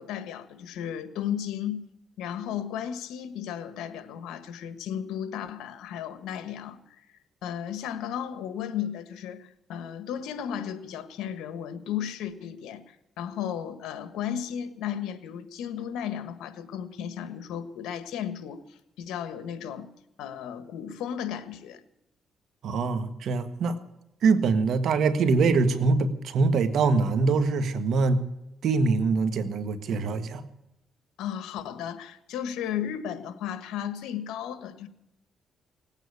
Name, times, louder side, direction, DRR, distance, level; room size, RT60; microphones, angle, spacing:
voice 1, 0.0-1.8 2.2-19.9 20.2-21.8 31.2-34.9, left 9 dB, 90° left, 11 dB, 1.5 m, -34 dB
voice 2, 22.6-23.8 24.2-28.2 28.6-30.4, right 4 dB, 70° right, 10 dB, 1.6 m, -23 dB
18.5 x 9.1 x 8.2 m, 0.86 s
cardioid pair, 90°, 0 cm